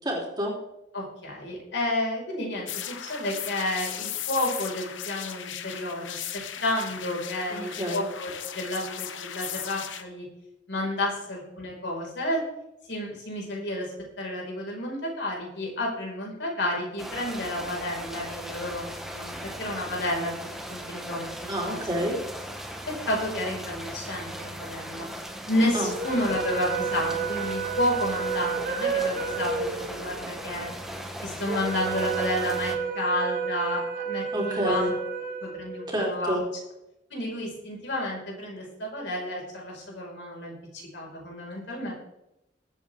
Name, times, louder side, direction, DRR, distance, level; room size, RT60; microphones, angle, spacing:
voice 1, 0.0-0.5 7.5-8.0 21.5-22.2 25.7-25.9 34.3-34.9 35.9-36.4, equal, 25° right, -1 dB, 3.4 m, -28 dB
voice 2, 0.9-6.1 6.6-10.2 10.7-12.4 12.9-22.0 22.9-25.1 25.5-30.7 31.2-34.9 35.4-36.4 37.1-41.9, left 1 dB, 65° left, -2 dB, 4.9 m, -31 dB
sound 1, 2.7-10.0, left 9 dB, 90° left, 1.0 m, -37 dB
sound 2, 17.0-32.8, equal, ahead, 1.3 m, -38 dB
sound 3, 25.8-36.2, right 6 dB, 50° right, 2.2 m, -31 dB
21.5 x 8.6 x 3.6 m, 0.88 s
head